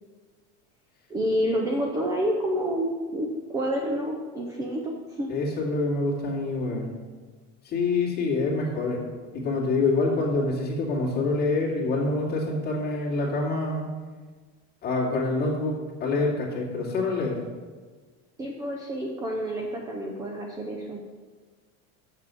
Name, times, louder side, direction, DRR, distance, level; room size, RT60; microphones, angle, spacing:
voice 1, 1.1-5.3 18.4-21.0, equal, 10° right, 1 dB, 0.4 m, -29 dB
voice 2, 5.3-6.9 7.6-9.0 9.3-13.9 14.8-17.4, left 3 dB, 25° left, -4 dB, 2.3 m, -26 dB
6.9 x 6.8 x 7.6 m, 1.4 s
cardioid pair, 175°, 37 cm